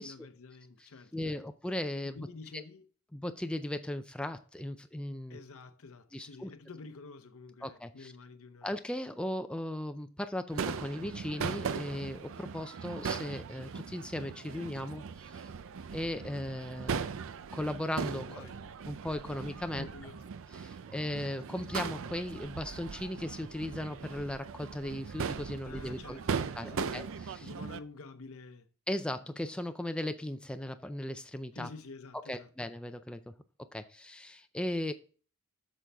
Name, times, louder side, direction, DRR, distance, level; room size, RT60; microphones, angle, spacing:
voice 1, 0.0-1.4 2.0-2.8 5.3-8.7 18.3-18.6 19.4-19.5 19.7-20.3 25.6-27.1 27.4-28.7 31.5-32.5, left 3 dB, 65° left, 0.8 m, -49 dB
voice 2, 1.1-2.2 2.5-2.6 3.1-5.4 6.1-6.5 7.6-8.1 8.6-15.5 15.9-17.2 17.5-18.5 18.9-19.9 20.5-26.2 26.5-27.5 28.9-31.7 32.1-33.3 33.6-34.9, left 1 dB, 5° left, 0.4 m, -37 dB
Crowd / Fireworks, 10.5-27.8, right 6 dB, 65° right, 0.5 m, -39 dB
8.4 x 6.3 x 3.4 m
head